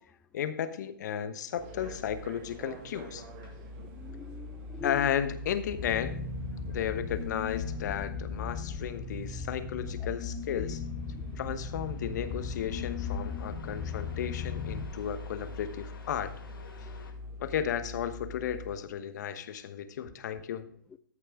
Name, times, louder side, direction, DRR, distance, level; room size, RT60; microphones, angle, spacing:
voice 1, 0.3-3.2 4.8-6.2 6.7-10.8 11.4-16.3 17.4-20.7, left 9 dB, 55° left, 11 dB, 1.1 m, -34 dB
sound 1, 1.6-18.8, left 2 dB, 35° right, 2.0 m, -44 dB
sound 2, 2.7-17.1, left 4 dB, 90° left, 2.3 m, -57 dB
voice 2, 3.8-5.1 10.0-10.1 10.5-10.7 11.1-11.4 17.1-17.2 20.9-21.0, left 5 dB, 10° left, 11 dB, 0.3 m, -44 dB
sound 3, 5.7-14.9, left 5 dB, 30° left, 1.9 m, -37 dB
14.0 x 6.5 x 3.6 m, 0.62 s
hypercardioid pair, 140°, 11 cm